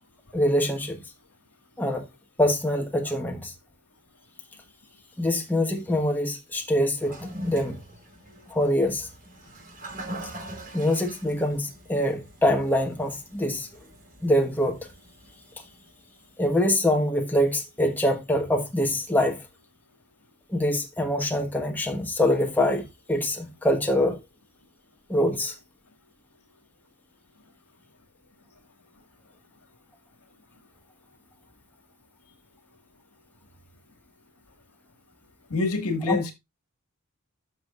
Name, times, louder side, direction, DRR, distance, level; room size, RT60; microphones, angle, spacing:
voice 1, 0.3-1.0 1.8-2.0 2.4-3.5 5.2-7.8 8.5-9.1 10.7-13.7 14.2-14.8 16.4-19.4 20.5-24.2 25.1-25.5 36.1-36.2, left 1 dB, 10° left, 1.3 m, -24 dB
Toilet flush, 7.0-16.3, right 1 dB, 40° right, 4.2 m, -43 dB
voice 2, 35.5-36.3, left 3 dB, 75° left, 2.0 m, -26 dB
13.0 x 5.9 x 2.5 m
head